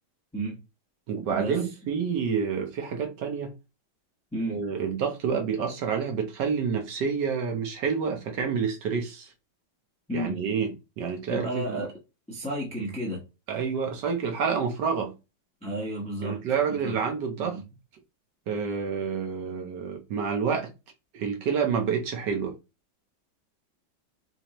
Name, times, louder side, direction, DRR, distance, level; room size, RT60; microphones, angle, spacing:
voice 1, 1.1-3.5 4.5-9.3 10.1-10.7 11.0-11.8 13.5-15.1 16.2-17.6 18.5-20.7 21.1-22.5, right 6 dB, 65° right, 1.2 m, -28 dB
voice 2, 11.3-11.9 12.3-13.2 15.6-16.4 16.7-16.9 17.4-17.6, right 1 dB, 5° left, 0.5 m, -32 dB
4.3 x 2.7 x 2.9 m
omnidirectional pair, 2.2 m